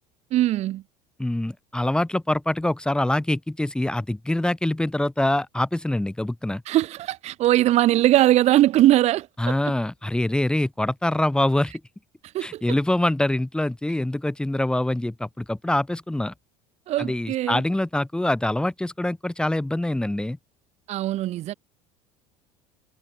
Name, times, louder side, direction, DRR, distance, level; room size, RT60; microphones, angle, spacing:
voice 1, 0.3-0.8 6.7-9.7 12.3-12.6 16.9-17.6 20.9-21.5, right 14 dB, 50° right, 0.7 m, -21 dB
voice 2, 1.2-6.6 9.4-11.7 12.4-16.3 17.0-20.4, left 1 dB, 5° left, 2.4 m, -24 dB
supercardioid pair, 95°, 14 cm